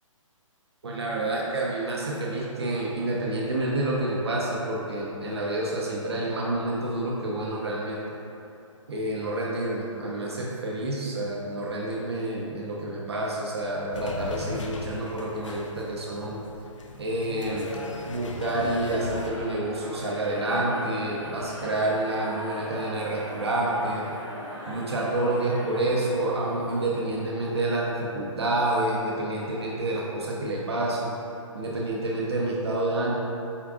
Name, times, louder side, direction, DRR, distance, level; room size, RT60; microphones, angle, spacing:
voice 1, 0.8-8.0 8.9-16.4 17.0-17.7 18.0-24.1 24.7-31.1 31.5-33.1, right 1 dB, 50° right, -4 dB, 0.6 m, -28 dB
sound 1, 13.9-19.3, left 3 dB, 65° left, 0.4 m, -38 dB
sound 2, 18.4-26.8, equal, ahead, 0.5 m, -39 dB
4.5 x 2.3 x 3.6 m, 2.8 s
hypercardioid pair, 175°, 17 cm